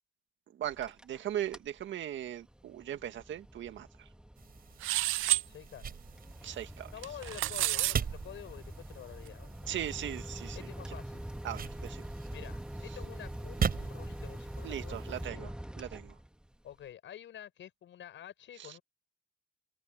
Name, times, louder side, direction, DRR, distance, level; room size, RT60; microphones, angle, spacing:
sound 1, 0.6-1.2 1.5-1.8 2.3-16.5, right 1 dB, 5° right, 2.0 m, -44 dB
voice 1, 0.6-3.9 6.4-6.9 9.7-10.6 11.4-12.0 14.6-15.5 15.8-16.1 18.6-18.8, right 11 dB, 70° right, 1.9 m, -38 dB
sound 2, 4.4-15.3, right 7 dB, 50° right, 6.2 m, -41 dB
sound 3, 4.8-5.4 7.0-8.0, right 18 dB, 90° right, 0.5 m, -29 dB
voice 2, 5.1-5.9 6.9-9.7 10.5-11.2 12.3-15.5 16.6-18.8, left 10 dB, 70° left, 7.6 m, -49 dB
cardioid pair, 90°, 20 cm